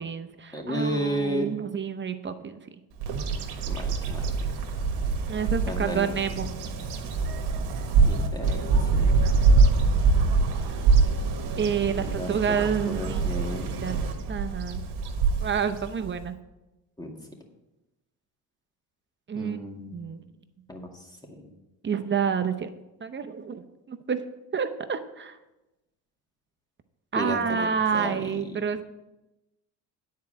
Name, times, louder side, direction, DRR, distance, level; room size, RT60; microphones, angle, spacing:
voice 1, 0.0-2.6 5.3-6.5 11.6-13.3 13.8-14.8 15.4-16.4 19.3-19.6 19.9-20.2 21.8-22.7 23.0-24.2 24.5-25.3 27.1-28.9, right 7 dB, 30° right, 8 dB, 0.7 m, -29 dB
voice 2, 0.5-1.5 3.6-4.5 5.7-6.2 8.0-9.1 12.0-14.1 17.0-17.1 19.3-20.0 20.7-21.0 21.4-21.5 27.1-28.3, equal, 10° left, 1 dB, 2.0 m, -33 dB
Bird vocalization bird call bird song, 3.0-16.3, right 4 dB, 70° right, 1.4 m, -24 dB
9.5 x 4.7 x 7.7 m, 1.0 s
cardioid pair, 95°, 40 cm